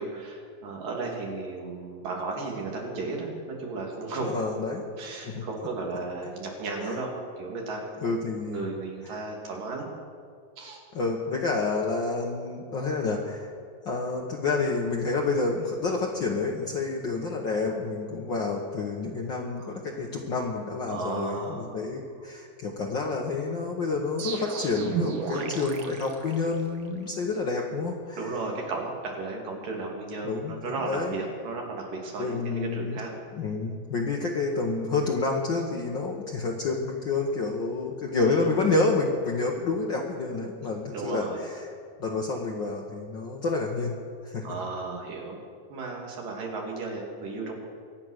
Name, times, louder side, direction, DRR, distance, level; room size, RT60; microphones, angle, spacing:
voice 1, 0.0-4.7 5.0-9.9 10.6-10.8 19.6-19.7 20.9-21.8 25.3-25.5 28.2-33.1 38.3-38.5 40.9-41.4 44.4-45.4 45.7-47.6, right 3 dB, 75° right, -1 dB, 4.0 m, -34 dB
voice 2, 4.2-4.8 5.3-5.4 6.8-7.0 8.0-8.6 10.9-13.5 13.8-28.2 30.2-31.1 32.2-33.0 33.4-41.7 42.0-44.0 44.2-44.5, left 3 dB, 75° left, 0 dB, 1.0 m, -29 dB
sound 1, 24.2-27.0, right 6 dB, 60° right, 1.3 m, -34 dB
23.5 x 8.9 x 6.4 m, 2.2 s
omnidirectional pair, 3.9 m